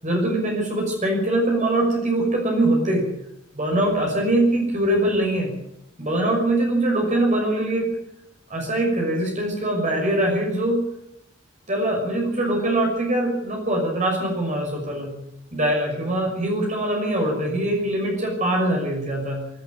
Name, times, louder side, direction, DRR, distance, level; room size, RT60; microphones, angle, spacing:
voice 1, 0.0-3.1 3.5-5.5 6.0-7.9 8.5-10.9 11.7-15.2 15.5-19.5, right 1 dB, 40° right, 0 dB, 6.1 m, -22 dB
23.5 x 12.0 x 9.2 m, 0.79 s
head